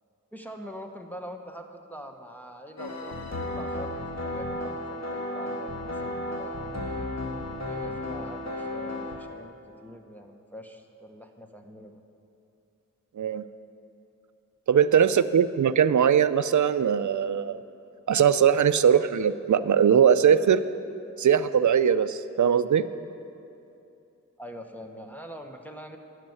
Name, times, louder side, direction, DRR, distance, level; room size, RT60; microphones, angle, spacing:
voice 1, 0.3-6.8 7.7-12.0 14.9-15.3 24.4-26.0, equal, 5° left, 2 dB, 1.2 m, -44 dB
sound 1, 2.8-9.2, left 1 dB, 55° left, 1.7 m, -33 dB
voice 2, 14.7-17.6 18.1-20.6 21.2-22.8, right 8 dB, 70° right, 14 dB, 0.5 m, -21 dB
12.0 x 6.6 x 9.5 m, 2.7 s
cardioid pair, 40°, 31 cm